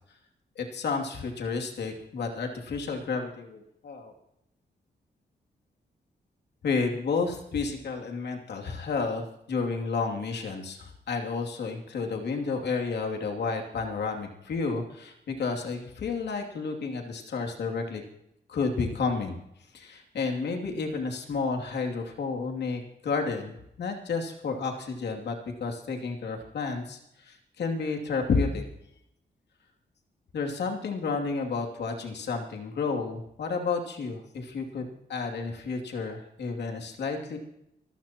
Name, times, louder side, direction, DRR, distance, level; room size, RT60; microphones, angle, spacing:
voice 1, 0.6-4.1 6.6-18.0 18.5-19.4 19.7-28.6 30.3-37.4, left 4 dB, 80° left, 2 dB, 2.8 m, -31 dB
24.5 x 15.0 x 3.0 m, 0.79 s
wide cardioid pair, 145°, 17 cm